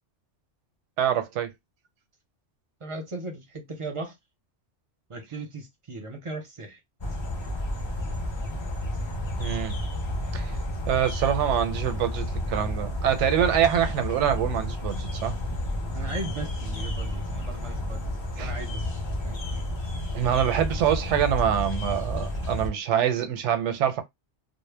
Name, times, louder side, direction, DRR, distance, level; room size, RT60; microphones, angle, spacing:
voice 1, 1.0-1.5 9.4-9.8 10.3-10.6 10.9-15.3 18.4-18.5 20.1-24.0, right 9 dB, 85° right, 0.9 m, -25 dB
voice 2, 2.8-4.1 5.1-6.8 15.9-18.1 18.4-18.8 19.2-19.4, right 2 dB, 40° right, 0.5 m, -37 dB
sound 1, 7.0-22.7, left 1 dB, 35° left, 0.4 m, -31 dB
2.0 x 2.0 x 3.2 m
omnidirectional pair, 1.2 m